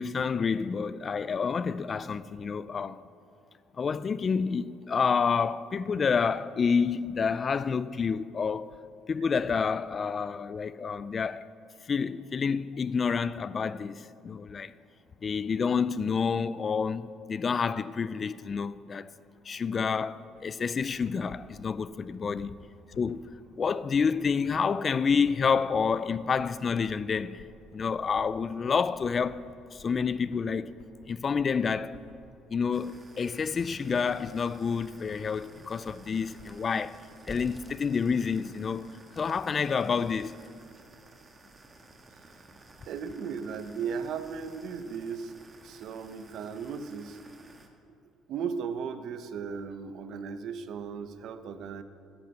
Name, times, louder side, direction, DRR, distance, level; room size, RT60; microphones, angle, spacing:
voice 1, 0.0-3.0 3.8-8.7 9.1-11.5 11.8-14.7 15.2-19.1 19.5-22.6 23.0-27.4 27.7-30.7 31.1-32.0 32.5-37.0 37.3-40.4, left 5 dB, 35° left, 0.4 m, -29 dB
sound 1, 20.3-36.5, left 5 dB, 80° left, 1.7 m, -55 dB
sound 2, 32.7-47.7, right 2 dB, 25° right, 1.6 m, -55 dB
sound 3, 34.7-40.7, equal, 5° left, 1.3 m, -53 dB
voice 2, 42.9-45.3 45.6-47.2 48.3-51.8, right 6 dB, 65° right, 0.9 m, -36 dB
12.5 x 11.0 x 6.9 m
cardioid pair, 105°, 0 cm